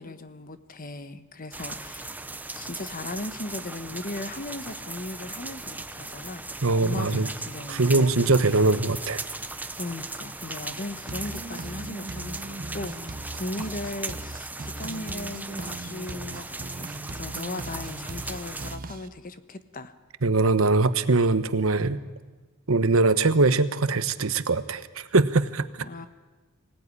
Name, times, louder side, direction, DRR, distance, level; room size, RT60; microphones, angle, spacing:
voice 1, 0.0-2.1 2.6-6.4 6.7-8.2 9.8-19.9 25.8-26.1, left 2 dB, 45° left, 11 dB, 1.2 m, -37 dB
sound 1, 1.5-18.8, right 2 dB, 10° right, 0.9 m, -38 dB
voice 2, 6.6-7.3 7.7-9.2 20.2-22.0 22.7-25.7, right 3 dB, 75° right, 13 dB, 1.1 m, -22 dB
sound 2, 11.1-19.1, right 2 dB, 45° right, 1.0 m, -39 dB
24.5 x 17.5 x 9.8 m, 1.3 s
head